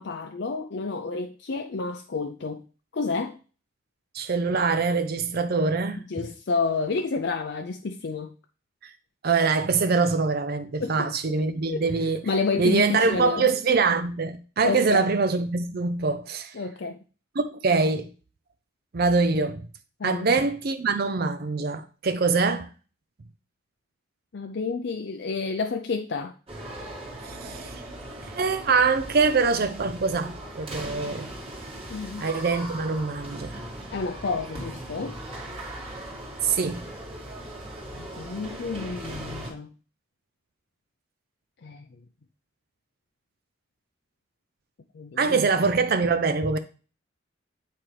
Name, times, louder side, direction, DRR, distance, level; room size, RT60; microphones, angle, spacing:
voice 1, 0.0-2.6 2.9-3.4 6.1-8.3 10.8-11.1 11.7-11.8 12.2-13.5 14.6-15.1 16.5-17.0 20.0-20.3 24.3-26.3 31.9-32.2 33.9-35.2 37.9-39.7 41.6-41.9 44.9-45.4, left 4 dB, 55° left, 0.5 m, -30 dB
voice 2, 4.1-6.3 8.8-8.9 9.2-12.2 12.6-16.5 17.4-18.1 18.9-19.7 20.0-22.7 27.2-27.8 28.2-31.3 32.2-33.6 36.4-36.9 45.2-46.6, right 4 dB, 45° right, 0.5 m, -24 dB
sound 1, 26.5-39.5, right 1 dB, 30° right, 1.8 m, -39 dB
8.4 x 4.4 x 3.2 m
head